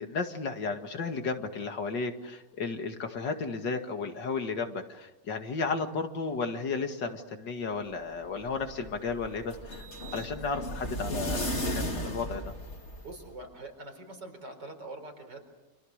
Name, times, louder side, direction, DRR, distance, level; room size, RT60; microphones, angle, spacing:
voice 1, 0.0-9.9 10.1-12.4, left 4 dB, 85° left, 6 dB, 2.7 m, -33 dB
sound 1, 8.2-13.3, equal, 40° left, 3.0 m, -35 dB
voice 2, 13.0-15.4, right 2 dB, 80° right, 5 dB, 5.0 m, -44 dB
29.5 x 26.5 x 6.6 m, 1.0 s
omnidirectional pair, 1.9 m